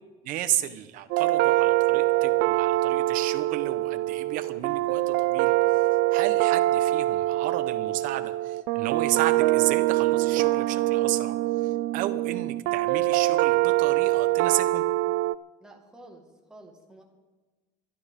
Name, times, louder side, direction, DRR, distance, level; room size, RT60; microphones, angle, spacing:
voice 1, 0.2-5.5 6.1-11.3 11.6-14.9, right 13 dB, 60° right, 10 dB, 1.0 m, -33 dB
sound 1, 1.1-15.4, right 17 dB, 75° right, 0.4 m, -24 dB
voice 2, 15.6-16.2 16.5-17.0, right 1 dB, 5° right, 0 dB, 1.9 m, -49 dB
24.5 x 12.5 x 3.7 m, 1.2 s
cardioid pair, 175°, 16 cm